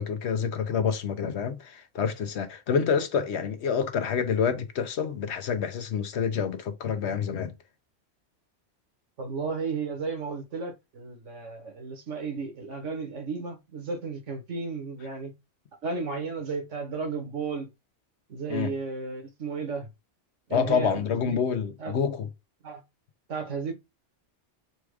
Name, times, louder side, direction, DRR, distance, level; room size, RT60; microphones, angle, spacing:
voice 1, 0.0-7.5 18.5-18.7 20.5-22.3, left 7 dB, 70° left, 1.0 m, -27 dB
voice 2, 9.2-15.3 15.8-17.7 18.3-19.9 20.5-21.4 21.8-21.9 22.6-22.8 23.3-23.7, right 4 dB, 80° right, 1.5 m, -34 dB
4.4 x 2.3 x 4.7 m
omnidirectional pair, 1.2 m